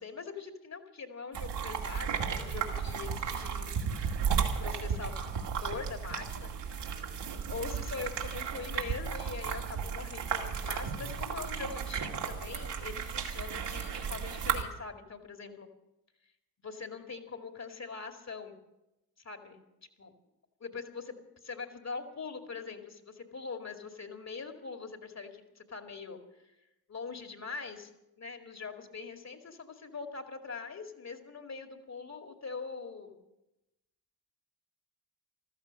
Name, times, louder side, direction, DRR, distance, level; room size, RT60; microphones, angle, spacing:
voice 1, 0.0-3.7 4.6-7.0 7.5-15.7 16.6-18.6 19.2-19.6 20.0-20.1 20.6-21.1 21.4-26.2 26.5-26.6 26.9-27.9 28.2-33.2, left 4 dB, 35° left, 5 dB, 2.3 m, -42 dB
sound 1, 1.3-14.6, right 7 dB, 60° right, 2.4 m, -34 dB
14.5 x 14.0 x 6.5 m, 0.93 s
hypercardioid pair, 45°, 47 cm